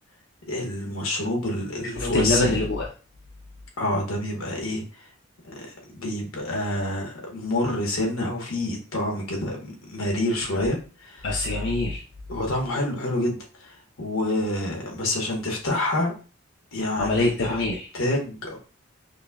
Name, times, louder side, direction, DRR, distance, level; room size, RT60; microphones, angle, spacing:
voice 1, 0.5-2.6 3.8-4.8 5.5-5.6 5.9-10.8 11.1-11.2 12.3-13.4 14.0-16.1 16.7-17.6 17.9-18.6, left 1 dB, 80° left, 0 dB, 1.1 m, -27 dB
voice 2, 1.8-2.9 10.5-10.7 11.2-12.0 17.0-17.9, left 2 dB, 55° left, -2 dB, 0.5 m, -25 dB
5.1 x 2.1 x 2.3 m, 0.36 s
head